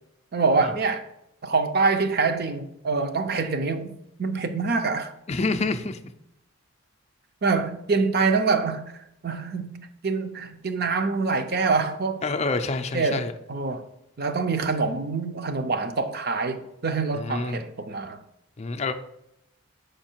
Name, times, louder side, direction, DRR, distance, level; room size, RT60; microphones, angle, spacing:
voice 1, 0.3-1.1 1.4-5.1 7.4-8.9 9.2-12.2 12.9-13.8 14.2-18.2, right 4 dB, 45° right, 0.6 m, -25 dB
voice 2, 5.3-6.0 12.2-13.3 17.1-17.6 18.6-18.9, left 3 dB, 30° left, 0.4 m, -27 dB
6.5 x 5.4 x 4.4 m
head